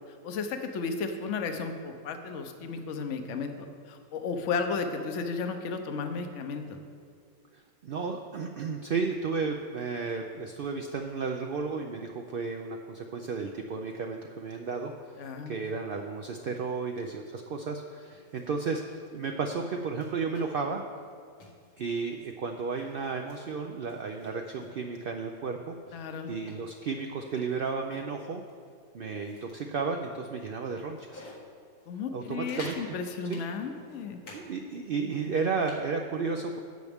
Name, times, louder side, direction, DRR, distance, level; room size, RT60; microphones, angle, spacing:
voice 1, 0.2-6.6 15.2-15.5 25.9-26.3 31.9-34.2, left 4 dB, 60° left, 6 dB, 1.0 m, -34 dB
voice 2, 7.5-20.8 21.8-28.4 28.9-31.2 32.1-33.0 33.2-33.4 34.3-36.6, right 4 dB, 70° right, 3 dB, 0.5 m, -33 dB
sound 1, 18.1-18.8 19.2-19.3 19.7-20.7 21.0-21.1 21.4-22.1 22.6-23.4 23.9-24.8 25.3-25.4 25.9-28.1 28.5-28.7 29.1-29.7 30.2-30.3 30.6-31.4 31.8-31.9 32.2-32.9 33.3-34.4 34.7-35.9, left 2 dB, 90° left, 2.2 m, -49 dB
12.5 x 8.2 x 3.5 m, 2.2 s
omnidirectional pair, 1.5 m